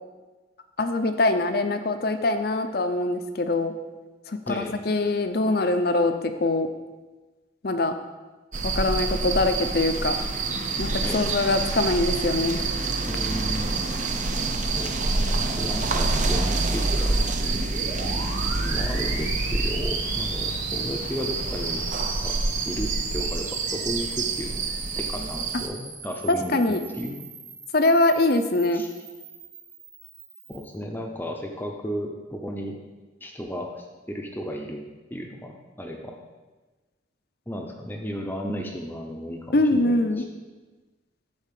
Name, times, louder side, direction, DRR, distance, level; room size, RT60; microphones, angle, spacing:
voice 1, 0.8-3.7 4.3-6.7 7.6-8.0 8.6-10.2 10.8-12.6 26.3-26.8 27.7-28.8 39.5-40.3, left 2 dB, 50° left, 8 dB, 0.7 m, -23 dB
voice 2, 4.5-4.8 11.0-11.3 13.0-13.8 14.2-14.3 14.7-17.7 18.1-18.3 18.6-21.9 22.2-24.7 24.9-26.6 26.9-27.3 28.7-28.9 30.5-32.8 33.2-36.2 37.5-40.2, equal, 10° left, 1 dB, 0.7 m, -34 dB
sound 1, 8.5-25.7, right 3 dB, 40° right, 0.7 m, -27 dB
sound 2, 17.4-30.7, right 3 dB, 90° right, 3.3 m, -39 dB
10.5 x 4.2 x 7.4 m, 1.2 s
head